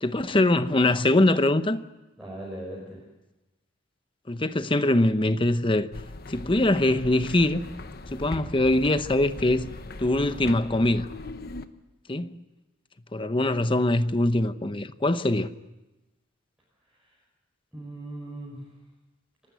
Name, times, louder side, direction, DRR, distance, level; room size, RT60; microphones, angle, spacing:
voice 1, 0.0-1.8 4.3-5.9 6.3-7.6 8.1-9.7 10.0-11.1 12.1-12.4 13.1-15.5, left 1 dB, 25° left, 0.9 m, -23 dB
voice 2, 2.2-3.0 13.4-13.6 16.9-17.2 17.7-18.7, right 1 dB, 5° right, 5.6 m, -39 dB
sound 1, 5.9-11.7, left 2 dB, 50° left, 1.0 m, -40 dB
28.5 x 12.5 x 9.2 m
head